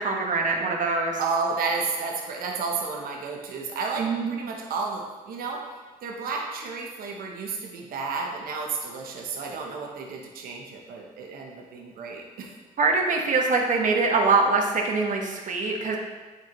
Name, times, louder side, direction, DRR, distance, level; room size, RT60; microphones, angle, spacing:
voice 1, 0.0-1.2 4.0-4.4 12.8-16.0, right 3 dB, 60° right, 1 dB, 1.2 m, -23 dB
voice 2, 1.2-5.6 6.0-12.5, right 4 dB, 75° right, 0 dB, 0.9 m, -32 dB
8.4 x 4.6 x 3.1 m, 1.3 s
cardioid pair, 70°, 15 cm